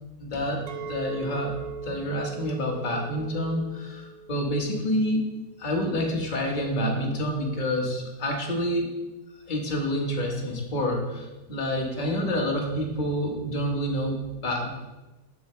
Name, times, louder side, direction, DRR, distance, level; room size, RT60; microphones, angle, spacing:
voice 1, 0.2-1.6 1.8-5.2 5.6-9.0 9.5-14.7, equal, 30° left, 0 dB, 1.2 m, -28 dB
Chink clink, 0.7-5.8, right 4 dB, 70° right, 0.9 m, -40 dB
7.6 x 7.0 x 3.1 m, 1.1 s
omnidirectional pair, 2.0 m